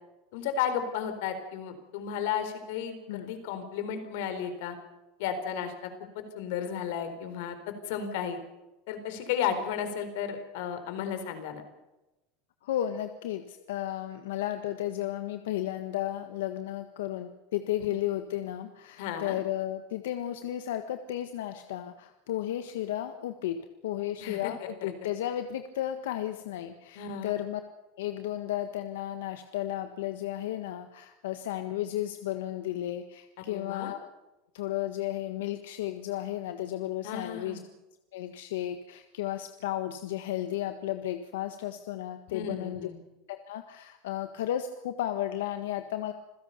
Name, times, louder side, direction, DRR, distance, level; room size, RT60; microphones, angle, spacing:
voice 1, 0.3-4.8 5.2-5.9 6.1-8.4 8.9-11.6 19.0-19.4 24.2-24.5 24.8-24.9 27.0-27.4 33.5-33.9 37.0-37.6 42.3-43.0, left 8 dB, 60° left, 9 dB, 4.2 m, -33 dB
voice 2, 12.6-27.6 28.0-34.1 34.5-37.6 38.1-42.9 43.3-46.1, left 12 dB, 85° left, 8 dB, 1.5 m, -33 dB
27.0 x 16.0 x 6.8 m, 1.0 s
supercardioid pair, 165°, 0 cm